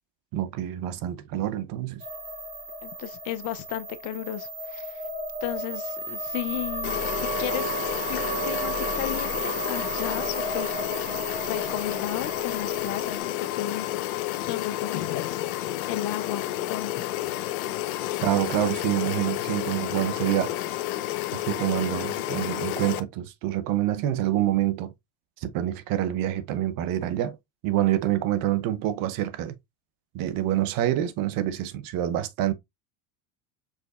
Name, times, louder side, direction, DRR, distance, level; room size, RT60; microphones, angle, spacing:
voice 1, 0.3-2.0 18.2-20.5 21.3-24.9 25.4-27.4 27.6-29.6 30.1-32.5, right 13 dB, 50° right, 0.8 m, -27 dB
sound 1, 2.0-13.2, right 2 dB, 20° right, 1.7 m, -33 dB
voice 2, 2.8-5.0 5.4-11.1 11.5-15.4 15.9-17.1, left 13 dB, 45° left, 0.6 m, -35 dB
sound 2, 6.8-23.0, left 14 dB, 80° left, 0.7 m, -31 dB
4.9 x 3.9 x 2.4 m
supercardioid pair, 115°, 42 cm